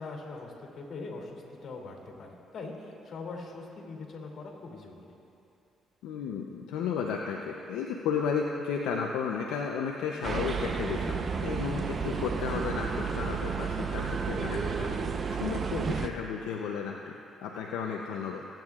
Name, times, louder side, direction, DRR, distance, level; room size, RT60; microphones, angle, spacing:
voice 1, 0.0-5.2, left 3 dB, 55° left, 0 dB, 2.7 m, -42 dB
voice 2, 6.0-15.0 15.3-18.5, left 6 dB, 85° left, 0 dB, 0.6 m, -33 dB
sound 1, 10.2-16.1, right 5 dB, 45° right, 0.7 m, -32 dB
24.0 x 9.1 x 2.4 m, 2.8 s
supercardioid pair, 65°, 0 cm